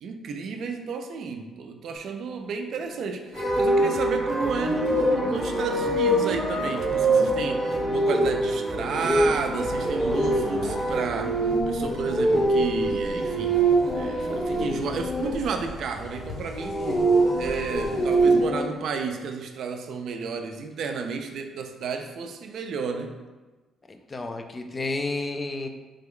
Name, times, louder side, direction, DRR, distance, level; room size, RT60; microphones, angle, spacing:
voice 1, 0.0-11.4 11.7-13.7 13.9-16.9 17.4-23.2, right 5 dB, 70° right, 6 dB, 0.3 m, -32 dB
sound 1, 3.3-15.3 16.4-18.6, right 2 dB, 75° left, 1.5 m, -24 dB
sound 2, 3.3-11.3, equal, 10° right, 0.6 m, -38 dB
sound 3, 9.1-18.5, left 2 dB, 55° left, 0.8 m, -42 dB
voice 2, 23.9-25.7, left 2 dB, 30° left, 6 dB, 0.3 m, -31 dB
3.3 x 2.2 x 3.6 m, 1.2 s
cardioid pair, 90°, 0 cm